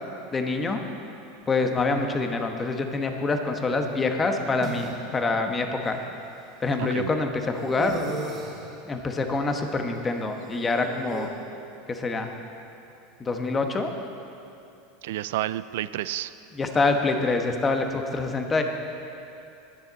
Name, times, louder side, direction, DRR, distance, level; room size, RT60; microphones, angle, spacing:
voice 1, 0.3-0.8 1.5-6.0 6.6-8.0 8.9-11.3 11.9-12.3 13.2-13.9 16.5-18.6, left 3 dB, 20° left, 5 dB, 1.1 m, -26 dB
sound 1, 3.7-4.9 5.8-5.9 7.6-8.7 10.0-11.3, right 3 dB, 35° right, 2.1 m, -37 dB
voice 2, 6.8-7.1 15.0-16.3, right 14 dB, 75° right, 16 dB, 0.3 m, -30 dB
20.0 x 7.2 x 4.1 m, 2.7 s
supercardioid pair, 115°, 0 cm